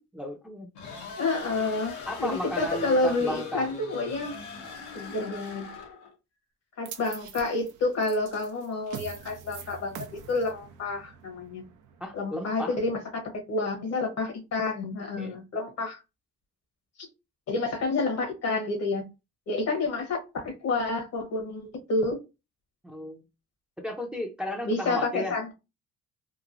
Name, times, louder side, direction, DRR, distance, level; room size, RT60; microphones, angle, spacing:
voice 1, 0.1-0.7 2.1-3.7 12.0-12.7 15.2-15.4 22.8-23.2 23.8-25.3, left 1 dB, 5° right, 0.5 m, -34 dB
sound 1, 0.7-6.1, left 4 dB, 80° left, 0.9 m, -41 dB
voice 2, 1.2-1.9 2.2-4.4 4.9-5.7 6.8-11.6 12.1-16.0 17.0-17.1 17.5-19.0 19.5-22.2 24.6-25.5, left 3 dB, 60° left, 1.0 m, -29 dB
sound 2, 6.9-13.1, right 7 dB, 80° right, 0.6 m, -45 dB
3.0 x 2.2 x 2.5 m
cardioid pair, 90°, 30 cm